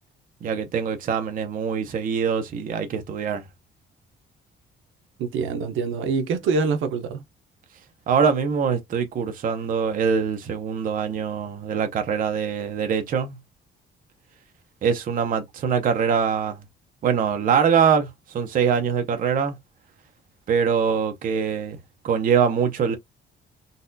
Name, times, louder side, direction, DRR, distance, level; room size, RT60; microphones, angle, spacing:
voice 1, 0.4-3.4 8.1-13.4 14.8-16.6 17.0-19.6 20.5-21.8 22.0-23.0, right 6 dB, 45° right, 0.7 m, -23 dB
voice 2, 5.2-7.2, right 4 dB, 80° right, 0.7 m, -25 dB
4.0 x 2.3 x 2.6 m
cardioid pair, 180°, 20 cm